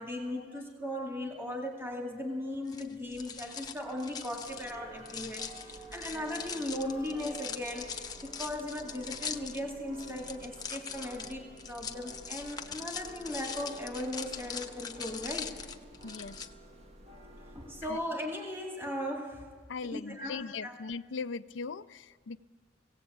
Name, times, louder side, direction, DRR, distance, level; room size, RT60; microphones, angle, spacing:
voice 1, 0.0-7.9 8.2-15.6 17.5-19.4 19.8-20.8, left 1 dB, 10° right, 1 dB, 2.2 m, -38 dB
sound 1, 2.7-16.5, left 6 dB, 20° left, 0.9 m, -42 dB
sound 2, 4.4-18.1, right 2 dB, 35° right, 1.5 m, -51 dB
voice 2, 16.0-16.5 17.8-18.0 19.7-22.4, left 4 dB, 80° left, 14 dB, 0.5 m, -39 dB
18.5 x 17.0 x 8.1 m, 1.5 s
head